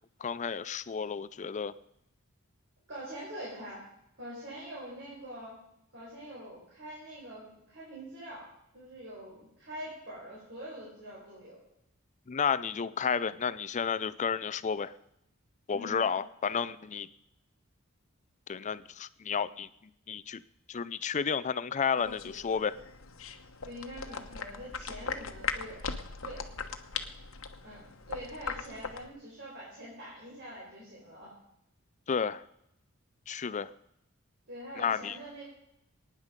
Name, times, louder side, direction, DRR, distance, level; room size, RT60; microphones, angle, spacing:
voice 1, 0.2-1.7 12.3-14.9 15.7-17.1 18.5-19.7 20.1-20.4 20.7-22.7 32.1-32.4 33.3-33.7 34.8-35.2, left 6 dB, 35° left, 16 dB, 0.4 m, -31 dB
voice 2, 2.9-3.8 4.2-5.5 5.9-8.5 8.7-11.6 15.7-16.0 23.6-25.8 26.2-26.4 27.6-31.3 34.5-35.4, equal, 60° right, -6 dB, 4.9 m, -44 dB
sound 1, 22.0-29.1, left 5 dB, 70° left, 1.1 m, -39 dB
22.0 x 9.9 x 5.2 m, 0.80 s
head